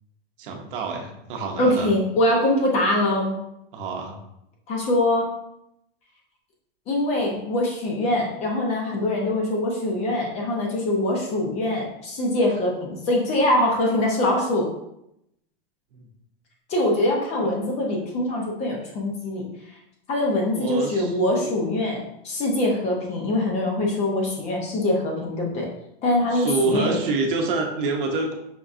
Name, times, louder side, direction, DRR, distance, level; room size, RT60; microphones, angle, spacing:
voice 1, 0.4-1.9 3.7-4.2 15.9-16.1 17.4-17.5 20.5-21.2 21.4-21.6 26.3-28.3, right 3 dB, 60° right, 3 dB, 0.8 m, -27 dB
voice 2, 1.6-3.4 4.7-5.3 6.9-14.7 16.7-19.5 20.1-25.7 26.0-27.0, left 1 dB, 20° left, -1 dB, 0.7 m, -23 dB
5.2 x 3.7 x 2.5 m, 0.80 s
supercardioid pair, 165°, 30 cm